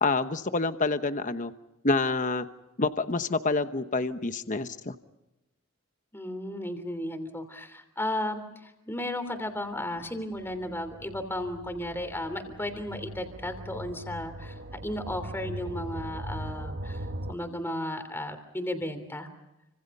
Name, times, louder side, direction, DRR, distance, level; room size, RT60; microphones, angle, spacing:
voice 1, 0.0-1.5 1.8-2.5 2.8-4.9, left 3 dB, 35° left, 10 dB, 1.0 m, -27 dB
voice 2, 6.1-19.3, left 1 dB, 10° left, 8 dB, 3.2 m, -34 dB
sound 1, 10.0-17.3, right 1 dB, 50° right, 1.1 m, -40 dB
30.0 x 26.0 x 5.5 m, 0.94 s
head